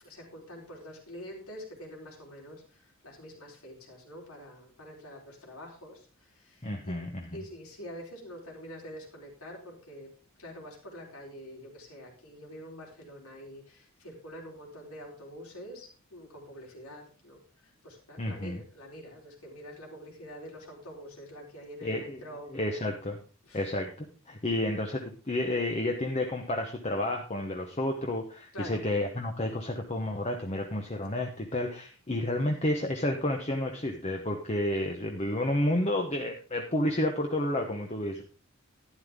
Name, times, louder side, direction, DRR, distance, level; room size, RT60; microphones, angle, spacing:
voice 1, 0.0-7.1 7.3-10.1 10.4-22.5 23.4-23.7 28.5-28.8, equal, 90° left, -1 dB, 4.1 m, -46 dB
voice 2, 6.6-7.4 18.2-18.6 21.8-22.2 22.5-23.2 23.5-38.2, left 1 dB, 30° left, 3 dB, 1.0 m, -31 dB
11.5 x 10.5 x 3.7 m, 0.36 s
head